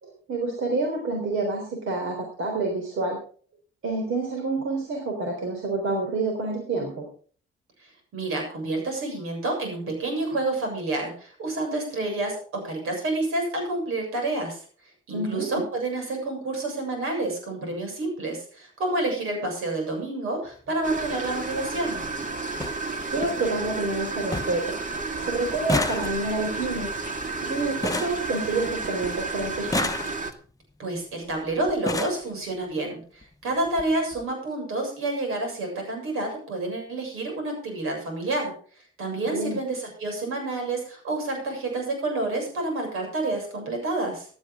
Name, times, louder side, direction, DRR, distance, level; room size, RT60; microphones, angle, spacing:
voice 1, 0.0-3.2 3.8-7.1 15.1-15.6 23.1-27.0 27.4-29.9 39.2-39.6, right 3 dB, 70° right, 2 dB, 3.7 m, -28 dB
voice 2, 8.1-14.6 15.1-22.0 30.8-38.5 39.0-44.3, right 2 dB, 90° right, 3 dB, 7.2 m, -29 dB
sound 1, 20.5-20.7 21.9-22.0 22.2-22.3 22.6-22.8 23.2-23.7 24.0-24.1 24.3-24.7 25.0-29.0 29.5-30.5 31.3-31.4 31.7-32.3 33.2-33.3 33.7-33.8 34.1-34.2, left 2 dB, 15° left, 0.9 m, -31 dB
sound 2, 20.8-30.3, right 3 dB, 35° right, 2.1 m, -32 dB
16.0 x 11.5 x 3.7 m, 0.43 s
cardioid pair, 90°, 21 cm